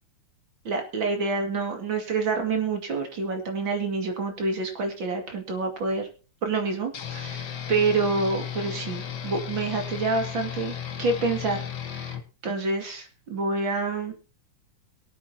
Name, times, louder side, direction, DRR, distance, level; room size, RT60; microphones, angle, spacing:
voice 1, 0.6-6.1 6.4-10.7 11.0-12.2 12.4-14.1, right 3 dB, 60° right, 3 dB, 3.1 m, -27 dB
sound 1, 6.9-12.2, left 8 dB, 55° left, 1.7 m, -35 dB
23.0 x 8.7 x 2.9 m, 0.34 s
omnidirectional pair, 2.4 m